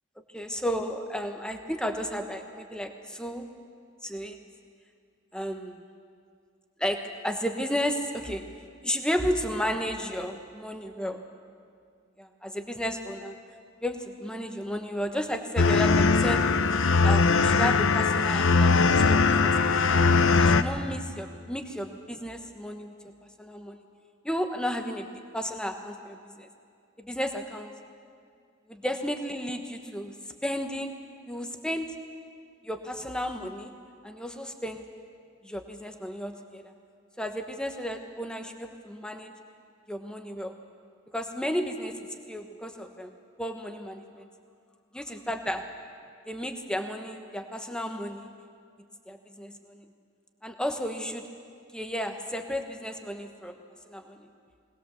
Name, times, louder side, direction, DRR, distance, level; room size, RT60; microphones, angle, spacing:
voice 1, 0.3-3.5 4.0-4.4 5.3-5.8 6.8-8.5 8.8-11.2 12.2-13.4 13.8-16.4 17.0-19.9 20.4-23.8 24.2-26.5 27.0-27.7 28.7-30.1 30.4-30.9 31.3-31.9 32.6-33.7 34.0-34.8 35.4-36.6 37.2-39.3 39.9-40.6 41.1-43.1 43.4-44.3 44.9-45.6 46.3-48.3 49.1-49.9 50.4-51.3 51.7-53.6 53.9-54.3, equal, 5° left, 5 dB, 1.1 m, -33 dB
sound 1, 15.6-20.6, left 4 dB, 80° left, 0.7 m, -21 dB
20.5 x 19.5 x 7.1 m, 2.2 s
head